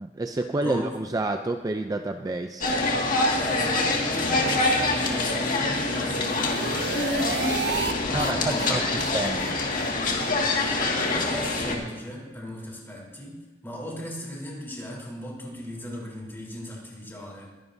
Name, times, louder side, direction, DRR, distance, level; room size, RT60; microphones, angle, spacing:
voice 1, 0.0-2.7 8.1-9.7, right 2 dB, 20° right, 6 dB, 0.4 m, -29 dB
voice 2, 0.6-1.0 3.3-7.6 8.1-9.2 10.6-17.5, left 1 dB, 15° left, -4 dB, 3.7 m, -37 dB
sound 1, 2.6-11.8, left 2 dB, 50° left, 1.9 m, -25 dB
sound 2, 5.9-7.9 8.2-8.3 8.6-8.7 9.0-9.1 9.4-9.5 9.8-9.9 10.2-10.3 10.6-10.7 11.0-11.1, right 5 dB, 65° right, 0.6 m, -32 dB
23.5 x 11.0 x 2.7 m, 1.2 s
head